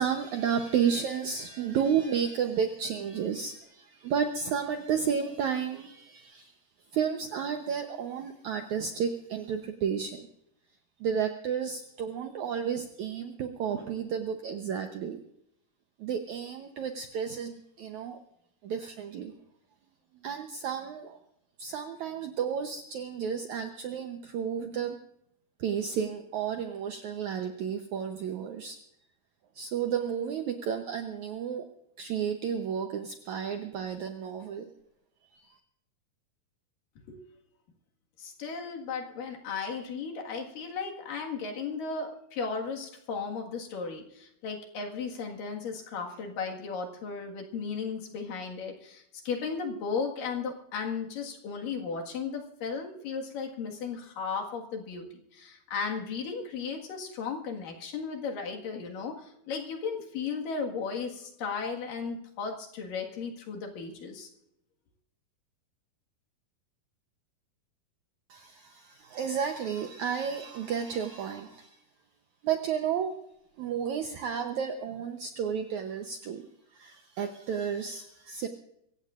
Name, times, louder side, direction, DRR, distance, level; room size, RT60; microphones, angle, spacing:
voice 1, 0.0-6.5 6.9-10.3 11.0-15.2 16.0-18.2 18.6-19.3 20.2-21.2 21.6-25.0 25.6-28.8 29.5-31.7 32.0-34.7 35.3-35.5 68.3-71.8 72.4-73.2 73.6-76.4 76.7-78.5, right 7 dB, 75° right, 5 dB, 1.8 m, -32 dB
voice 2, 38.2-55.1 55.3-64.3, left 5 dB, 65° left, 1 dB, 3.2 m, -35 dB
25.0 x 15.5 x 2.5 m, 0.77 s
omnidirectional pair, 4.5 m